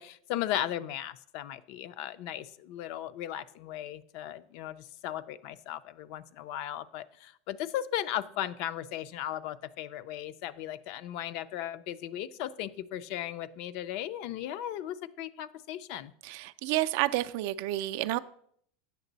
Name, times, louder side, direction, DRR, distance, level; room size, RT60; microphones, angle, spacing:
voice 1, 0.0-16.1, left 12 dB, 55° left, 14 dB, 0.4 m, -36 dB
voice 2, 16.2-18.2, right 15 dB, 60° right, 12 dB, 0.3 m, -30 dB
8.1 x 5.9 x 4.0 m, 0.65 s
supercardioid pair, 140°, 0 cm